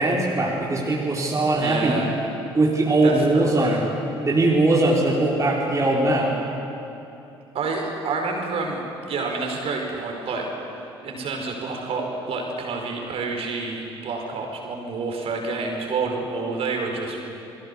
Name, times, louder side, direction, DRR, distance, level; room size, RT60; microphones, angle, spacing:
voice 1, 0.0-2.0 2.5-3.9 4.2-6.3, right 2 dB, 25° right, -3 dB, 4.1 m, -20 dB
voice 2, 1.6-2.1 3.0-3.8 7.5-10.5 11.0-17.2, right 3 dB, 45° right, 2 dB, 5.1 m, -28 dB
29.0 x 21.0 x 7.0 m, 2.9 s
figure-of-eight pair, 55°, 14 cm